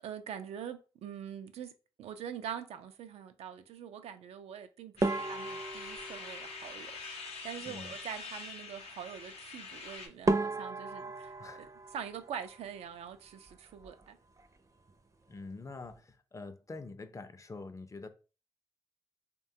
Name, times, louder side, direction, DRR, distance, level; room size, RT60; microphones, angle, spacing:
voice 1, 0.0-1.7 2.0-11.7 11.9-14.2, right 8 dB, 90° right, 0.4 m, -44 dB
sound 1, 5.0-10.1, left 4 dB, 80° left, 0.7 m, -45 dB
sound 2, 5.0-7.5 9.7-9.8 10.3-13.0 13.3-14.1 14.4-14.6 14.9-15.0 15.6-15.9, right 2 dB, 30° right, 0.5 m, -35 dB
voice 2, 15.3-18.1, left 3 dB, 30° left, 0.5 m, -45 dB
3.0 x 2.2 x 2.7 m
supercardioid pair, 50°, 10 cm